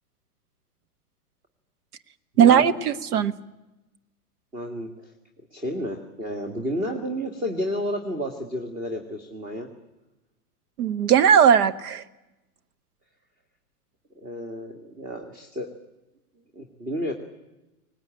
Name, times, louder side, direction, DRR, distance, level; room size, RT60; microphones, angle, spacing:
voice 1, 2.4-3.4 10.8-12.0, right 8 dB, 75° right, 12 dB, 1.4 m, -18 dB
voice 2, 4.5-5.1 5.5-9.7 14.2-15.7 16.5-17.1, equal, 15° right, 4 dB, 2.0 m, -31 dB
19.5 x 18.5 x 9.1 m, 1.0 s
hypercardioid pair, 120°, 46 cm